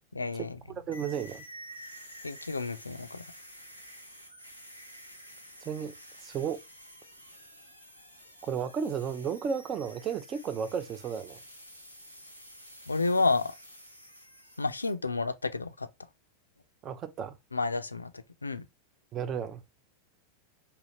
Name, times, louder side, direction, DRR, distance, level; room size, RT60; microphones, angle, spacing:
voice 1, 0.1-0.6 2.2-3.2 12.9-13.5 14.6-15.9 17.5-18.7, left 3 dB, 80° left, 0.4 m, -30 dB
voice 2, 0.9-1.4 5.6-5.9 6.2-6.6 8.4-11.4 16.8-17.4 19.1-19.6, right 7 dB, 30° right, 0.5 m, -33 dB
sound 1, 0.9-14.9, equal, 85° right, 0.9 m, -50 dB
4.0 x 2.8 x 2.8 m
figure-of-eight pair, 90°, 0 cm